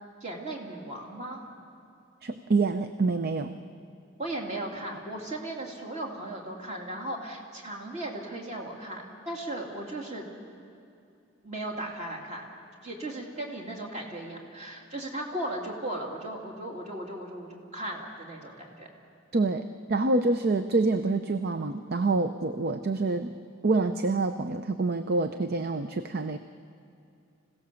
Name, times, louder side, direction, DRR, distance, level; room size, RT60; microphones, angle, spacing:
voice 1, 0.2-1.4 4.2-10.2 11.4-12.4 12.8-18.9, right 1 dB, 35° right, -1 dB, 2.7 m, -36 dB
voice 2, 2.2-3.6 19.3-23.4 23.6-26.4, right 3 dB, 50° right, 9 dB, 0.6 m, -27 dB
25.5 x 17.0 x 7.0 m, 2.5 s
head